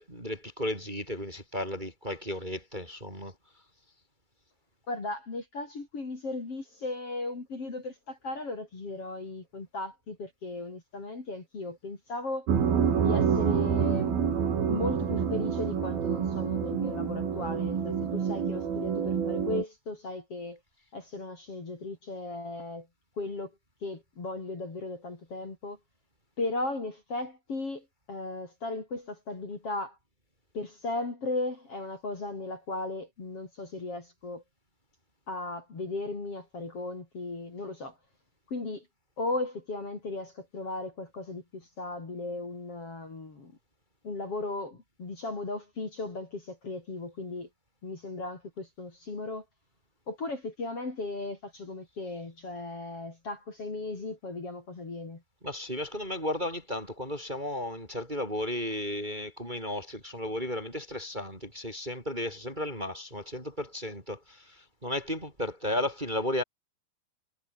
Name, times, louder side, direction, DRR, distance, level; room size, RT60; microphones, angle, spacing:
voice 1, 0.0-3.3 55.4-66.4, left 1 dB, 10° right, 5.1 m, -34 dB
voice 2, 4.9-12.5 13.0-14.2 14.7-20.6 20.9-22.9 23.2-23.5 23.8-25.8 26.4-30.0 30.5-34.4 35.3-38.0 38.5-38.9 39.2-43.5 44.0-47.5 47.8-49.4 50.1-55.2, left 2 dB, 35° left, 5.1 m, -36 dB
sound 1, 12.5-19.6, right 7 dB, 60° right, 5.3 m, -27 dB
omnidirectional pair, 4.8 m